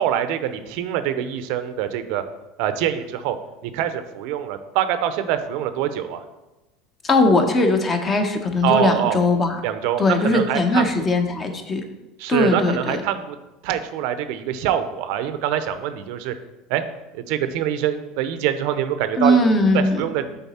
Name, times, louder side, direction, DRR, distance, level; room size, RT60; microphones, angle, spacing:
voice 1, 0.0-2.2 2.6-3.4 3.6-6.2 8.6-9.2 9.6-11.1 12.2-13.4 13.6-16.3 16.7-16.8 17.1-19.4 19.7-20.4, right 10 dB, 70° right, 10 dB, 0.5 m, -24 dB
voice 2, 7.0-9.6 10.0-11.8 12.3-13.0 19.2-20.1, left 2 dB, 25° left, 5 dB, 0.8 m, -19 dB
7.1 x 4.0 x 4.2 m, 1.0 s
supercardioid pair, 130°, 0 cm